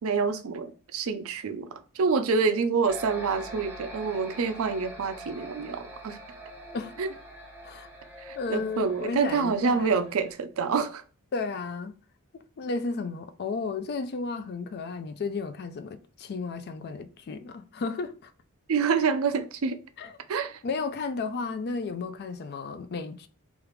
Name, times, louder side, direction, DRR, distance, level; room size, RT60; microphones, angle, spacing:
voice 1, 0.0-6.2 7.0-7.1 8.2-11.0 18.7-19.8 20.3-20.6, right 5 dB, 70° right, 0.5 m, -27 dB
sound 1, 2.9-10.3, equal, 10° right, 0.8 m, -44 dB
voice 2, 8.4-10.1 11.3-12.0 12.3-18.3 20.0-20.1 20.6-23.3, left 4 dB, 50° left, 0.4 m, -33 dB
3.3 x 2.4 x 3.0 m
head